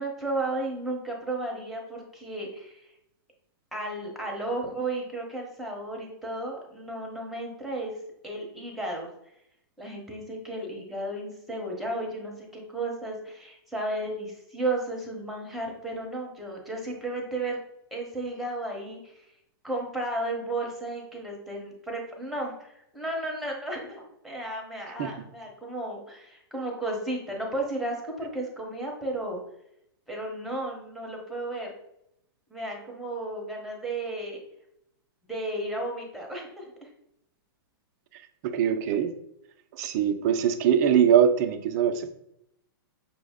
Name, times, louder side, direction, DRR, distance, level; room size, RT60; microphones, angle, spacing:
voice 1, 0.0-2.8 3.7-7.9 8.2-9.1 9.8-17.6 17.9-19.2 19.6-29.4 30.1-31.7 32.5-34.4 35.2-36.9, right 2 dB, ahead, -1 dB, 1.0 m, -33 dB
voice 2, 38.4-39.1 39.8-42.1, right 8 dB, 40° right, 9 dB, 0.5 m, -22 dB
5.9 x 2.1 x 3.6 m, 0.78 s
hypercardioid pair, 135°, 13 cm